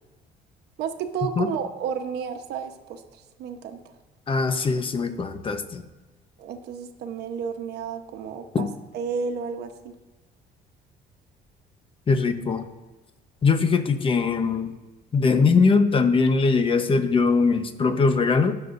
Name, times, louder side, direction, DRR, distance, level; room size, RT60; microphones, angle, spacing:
voice 1, 0.8-3.8 6.4-8.7 8.9-9.9, right 6 dB, 80° right, 6 dB, 1.0 m, -32 dB
voice 2, 4.3-5.8 8.5-8.7 12.1-12.7 13.4-14.7 15.1-18.5, left 4 dB, 30° left, 9 dB, 0.9 m, -21 dB
19.0 x 7.0 x 2.6 m, 1.2 s
cardioid pair, 110°, 17 cm